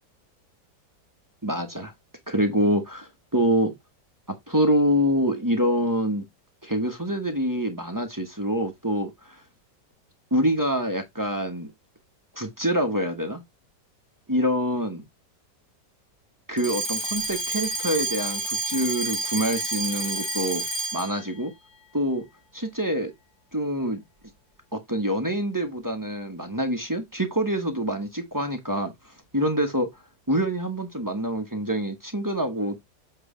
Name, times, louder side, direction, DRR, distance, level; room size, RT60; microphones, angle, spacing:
voice 1, 1.4-1.9 2.3-3.7 4.3-6.2 6.6-9.4 10.3-11.7 12.3-13.4 14.3-15.0 16.5-20.6 20.9-21.5 21.9-22.3 22.5-23.1 23.5-24.0 24.7-28.9 29.3-29.9 30.3-32.8, equal, 15° right, 0.9 m, -26 dB
Alarm, 16.6-21.2, right 2 dB, 20° left, 0.9 m, -29 dB
7.8 x 3.2 x 5.0 m
omnidirectional pair, 1.9 m